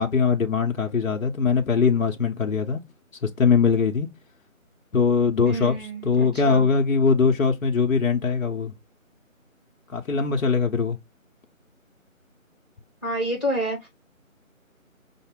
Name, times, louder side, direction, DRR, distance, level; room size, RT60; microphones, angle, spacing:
voice 1, 0.0-2.8 3.4-4.1 4.9-5.8 6.0-8.7 9.9-11.0, left 5 dB, 75° left, 0.8 m, -21 dB
voice 2, 5.4-6.7 13.0-13.9, right 1 dB, ahead, 1.6 m, -28 dB
5.7 x 2.0 x 3.6 m
figure-of-eight pair, 170°, 42 cm